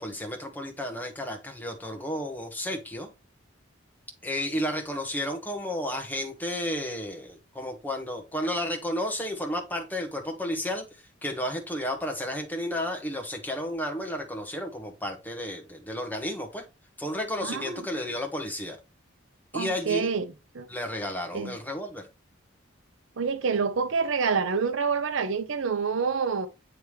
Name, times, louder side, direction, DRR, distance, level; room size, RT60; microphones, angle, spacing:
voice 1, 0.0-3.1 4.2-16.6 17.0-18.8 19.5-20.1 20.7-22.1, left 1 dB, 10° left, 1.2 m, -32 dB
voice 2, 17.4-17.8 19.5-20.3 20.5-20.7 21.3-21.6 23.2-26.5, right 5 dB, 70° right, 0.6 m, -27 dB
9.1 x 3.4 x 3.2 m
head